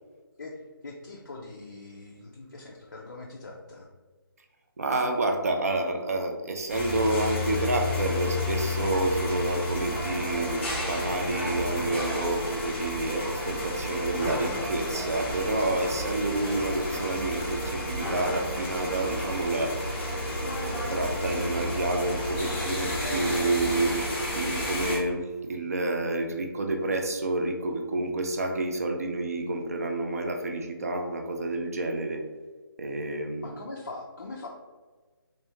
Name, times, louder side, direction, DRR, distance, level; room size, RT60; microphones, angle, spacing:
voice 1, 0.4-3.9 33.4-34.5, left 3 dB, 45° left, -3 dB, 0.4 m, -42 dB
voice 2, 4.8-19.7 20.8-32.2 32.8-33.5, right 2 dB, 40° right, 4 dB, 0.4 m, -29 dB
sound 1, 6.7-25.0, left 1 dB, 30° left, 0.8 m, -31 dB
3.4 x 2.7 x 2.8 m, 1.4 s
hypercardioid pair, 175°, 12 cm